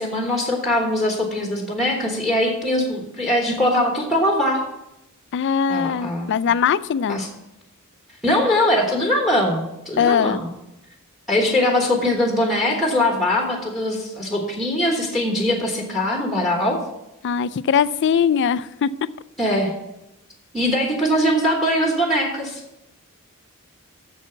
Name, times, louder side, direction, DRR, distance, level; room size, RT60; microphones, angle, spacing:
voice 1, 0.0-4.6 5.7-6.3 7.1-7.3 8.2-10.5 11.3-16.8 19.4-19.7 20.5-22.6, left 1 dB, ahead, 0 dB, 1.3 m, -21 dB
voice 2, 5.3-7.2 10.0-10.4 17.2-18.9, left 7 dB, 55° left, 17 dB, 0.3 m, -20 dB
8.3 x 7.0 x 5.8 m, 0.90 s
head